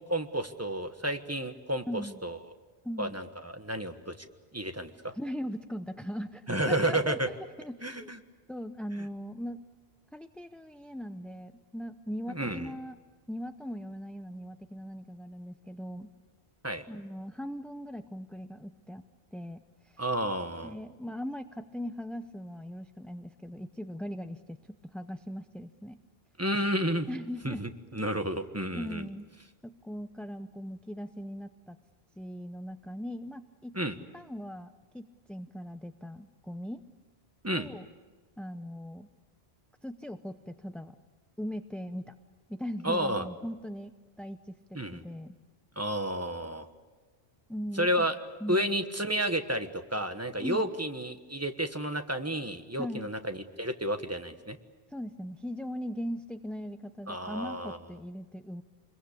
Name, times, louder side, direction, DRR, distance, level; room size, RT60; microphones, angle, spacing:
voice 1, 0.1-1.8 2.2-2.4 3.0-4.1 4.5-5.1 6.5-7.3 7.8-8.2 12.3-12.7 16.6-16.8 20.0-20.7 26.4-27.1 27.4-29.1 33.7-33.9 37.4-37.7 42.8-43.2 44.7-45.0 45.8-46.6 47.8-48.1 48.5-54.6 57.1-57.8, right 1 dB, 15° right, 7 dB, 1.3 m, -31 dB
voice 2, 1.9-2.2 2.8-3.2 5.1-8.1 8.5-9.6 10.1-13.0 13.3-16.1 16.9-19.0 19.3-20.0 20.6-24.6 24.9-26.0 27.1-27.6 28.8-29.3 29.6-31.8 32.2-33.7 34.1-36.8 37.5-37.9 38.4-39.1 39.8-41.0 41.4-42.1 42.5-43.9 44.2-44.5 44.9-45.3 47.5-48.1 48.4-48.7 50.4-50.6 52.8-53.1 54.9-58.6, equal, ahead, 8 dB, 0.5 m, -39 dB
27.0 x 22.0 x 8.5 m, 1.3 s
omnidirectional pair, 1.0 m